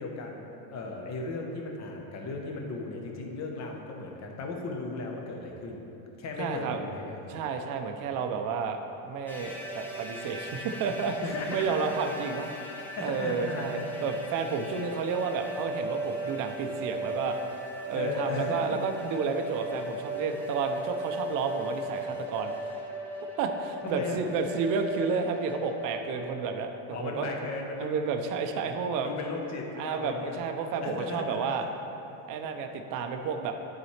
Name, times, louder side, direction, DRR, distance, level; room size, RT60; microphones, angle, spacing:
voice 1, 0.0-5.8 6.2-7.3 11.2-11.9 13.0-13.9 17.7-18.8 23.8-24.2 26.9-27.9 29.0-30.4 30.8-31.4, left 3 dB, 35° left, 1 dB, 0.9 m, -36 dB
voice 2, 6.4-6.8 7.3-11.2 11.5-12.5 13.0-17.4 17.9-22.7 23.4-27.3 27.8-29.1 29.8-31.7 32.3-33.5, right 5 dB, 45° right, 5 dB, 0.6 m, -31 dB
sound 1, 9.3-26.4, right 1 dB, 5° left, 0.6 m, -37 dB
11.0 x 4.1 x 3.2 m, 2.9 s
supercardioid pair, 130°, 48 cm